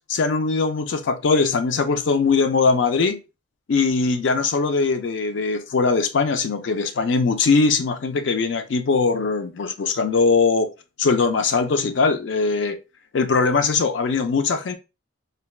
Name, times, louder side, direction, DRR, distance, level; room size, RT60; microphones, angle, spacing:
voice 1, 0.1-3.2 3.7-10.7 11.0-12.8 13.1-14.7, left 4 dB, 60° left, 0.4 m, -21 dB
3.3 x 2.2 x 2.3 m
head